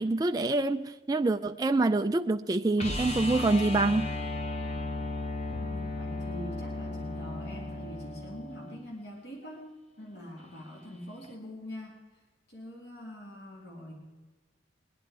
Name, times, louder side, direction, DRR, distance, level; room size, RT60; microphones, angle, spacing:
voice 1, 0.0-4.1, right 2 dB, 20° right, 0.3 m, -26 dB
sound 1, 2.8-8.8 11.2-11.3, left 2 dB, 30° left, 1.3 m, -35 dB
voice 2, 5.6-9.7 10.0-12.0 12.5-13.9, left 1 dB, 55° left, 2.4 m, -44 dB
21.0 x 9.9 x 4.6 m
head